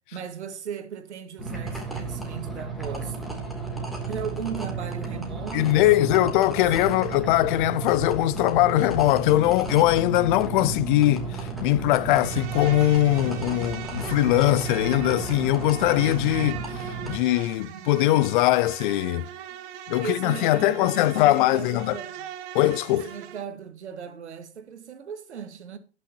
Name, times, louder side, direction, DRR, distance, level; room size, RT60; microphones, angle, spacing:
voice 1, 0.1-3.2 4.1-7.0 17.7-18.2 20.0-22.1 22.9-25.8, right 7 dB, 75° right, 1.7 m, -37 dB
sound 1, 1.4-17.2, right 4 dB, ahead, 2.8 m, -33 dB
voice 2, 5.5-19.3 19.9-22.0 22.5-23.1, left 15 dB, 45° left, 0.7 m, -21 dB
Insect, 12.0-23.4, right 10 dB, 45° right, 1.4 m, -40 dB
19.0 x 6.4 x 2.9 m
figure-of-eight pair, 105°, 35 cm